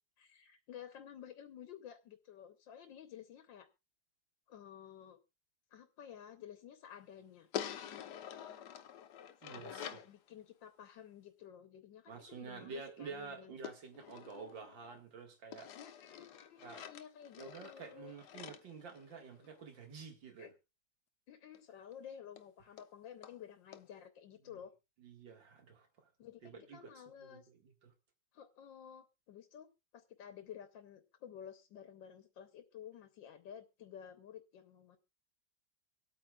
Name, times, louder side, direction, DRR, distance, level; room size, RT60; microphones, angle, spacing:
voice 1, 0.2-3.7 4.5-5.2 5.7-7.5 9.5-13.5 15.7-18.1 20.4-20.5 21.3-24.7 26.2-27.5 28.3-29.7 29.9-35.0, left 9 dB, 85° left, 1.6 m, -53 dB
sound 1, 7.5-10.1 13.6-15.0 15.5-19.6 21.5-21.6 21.9-22.0 22.4-22.5 22.8-22.9 23.2-23.4 23.7-23.8, left 9 dB, 65° left, 1.3 m, -47 dB
voice 2, 9.4-10.0 12.1-15.7 16.6-16.8 17.4-20.5 25.0-25.9 26.4-26.9 27.2-27.9, right 5 dB, 90° right, 2.6 m, -49 dB
24.0 x 8.7 x 2.4 m
omnidirectional pair, 2.0 m